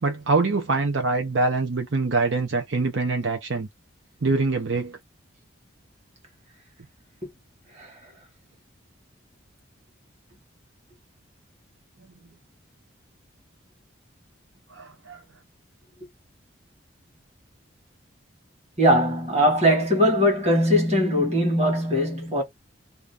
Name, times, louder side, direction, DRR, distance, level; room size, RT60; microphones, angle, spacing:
voice 1, 0.0-3.7 4.2-5.0 14.7-15.2, right 3 dB, 70° right, 0.7 m, -24 dB
voice 2, 18.8-22.4, equal, 35° right, 1.5 m, -21 dB
2.8 x 2.5 x 3.3 m
head